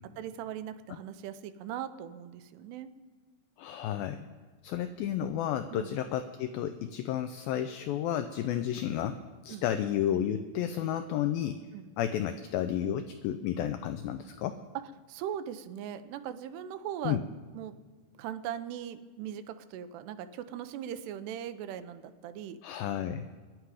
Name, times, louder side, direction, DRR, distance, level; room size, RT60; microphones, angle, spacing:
voice 1, 0.2-2.9 5.7-6.0 9.5-9.6 11.7-11.9 15.1-17.2 17.5-17.8 18.2-22.6, right 10 dB, 85° right, 11 dB, 2.8 m, -39 dB
voice 2, 3.6-4.3 4.6-11.6 12.0-14.6 17.0-17.2 22.6-23.3, left 10 dB, 90° left, 9 dB, 2.1 m, -32 dB
21.0 x 10.0 x 4.9 m, 1.5 s
omnidirectional pair, 4.7 m